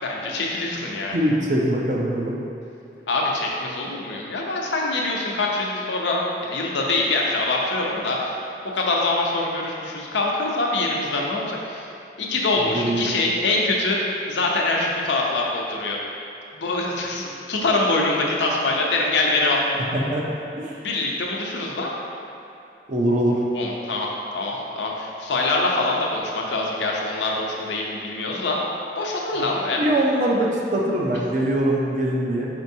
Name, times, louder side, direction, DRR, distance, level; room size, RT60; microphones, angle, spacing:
voice 1, 0.0-1.2 3.1-8.3 8.7-11.9 12.2-14.0 14.3-16.0 16.5-19.6 20.8-21.9 23.5-24.1 24.3-28.6 29.0-29.8, left 2 dB, 90° left, -2 dB, 0.6 m, -24 dB
voice 2, 1.1-2.3 12.7-13.0 19.7-20.3 20.6-20.7 22.9-23.4 29.3-29.5 29.8-32.5, right 1 dB, 45° right, -3 dB, 0.5 m, -22 dB
4.5 x 4.4 x 2.7 m, 2.8 s
head